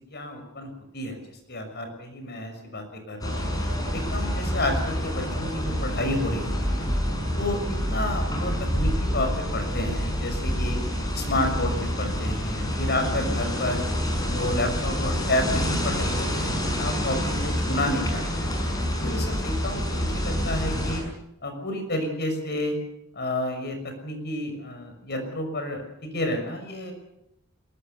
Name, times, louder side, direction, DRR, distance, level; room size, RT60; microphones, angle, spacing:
voice 1, 0.1-3.5 3.9-6.9 7.3-10.8 11.1-13.9 14.3-18.5 19.0-21.0 21.4-22.7 23.1-23.8 24.0-26.9, left 1 dB, 55° left, 5 dB, 6.4 m, -30 dB
sound 1, 3.2-21.0, equal, 20° left, 6.4 m, -27 dB
22.0 x 22.0 x 6.9 m, 0.85 s
head